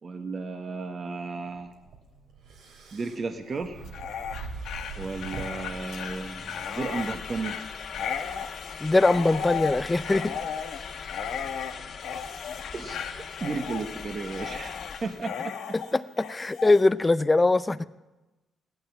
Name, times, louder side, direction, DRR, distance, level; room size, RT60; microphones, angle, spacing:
voice 1, 0.0-1.7 2.9-3.8 5.0-7.6 12.7-13.0 13.4-15.8, right 4 dB, 40° right, 5 dB, 1.2 m, -34 dB
sound 1, 1.5-6.6, right 4 dB, 85° right, 3.1 m, -42 dB
Dog, 3.8-16.8, left 7 dB, 80° left, 1.2 m, -35 dB
sound 2, 4.4-15.3, left 6 dB, 55° left, 2.5 m, -41 dB
voice 2, 8.8-10.3 15.7-17.9, left 2 dB, 20° left, 15 dB, 0.6 m, -22 dB
16.0 x 11.5 x 7.2 m, 1.1 s
cardioid pair, 90°, 0 cm